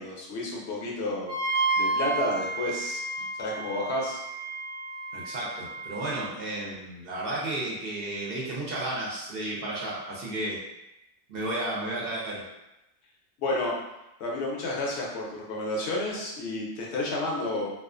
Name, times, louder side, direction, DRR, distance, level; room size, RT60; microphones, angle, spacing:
voice 1, 0.0-1.4 1.8-3.0 3.4-4.2 13.4-13.8 14.2-17.7, left 2 dB, 70° left, -2 dB, 0.9 m, -31 dB
Wind instrument woodwind instrument, 1.3-6.2, right 3 dB, 40° right, 0.4 m, -31 dB
voice 2, 5.1-10.6 11.3-12.5, right 1 dB, 60° right, -4 dB, 0.7 m, -33 dB
2.3 x 2.3 x 2.4 m, 0.92 s
omnidirectional pair, 1.2 m